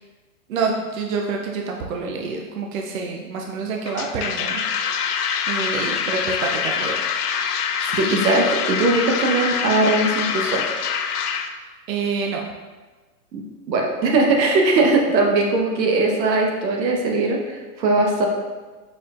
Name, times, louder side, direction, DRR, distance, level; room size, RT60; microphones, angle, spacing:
voice 1, 0.5-7.1 11.9-12.4, right 4 dB, 55° right, 1 dB, 0.6 m, -27 dB
sound 1, 3.9-11.5, left 7 dB, 65° left, 0.5 m, -25 dB
voice 2, 7.9-10.6 13.3-13.4 13.7-18.3, right 2 dB, 90° right, 0 dB, 1.1 m, -20 dB
4.7 x 4.4 x 2.4 m, 1.3 s
hypercardioid pair, 165°, 49 cm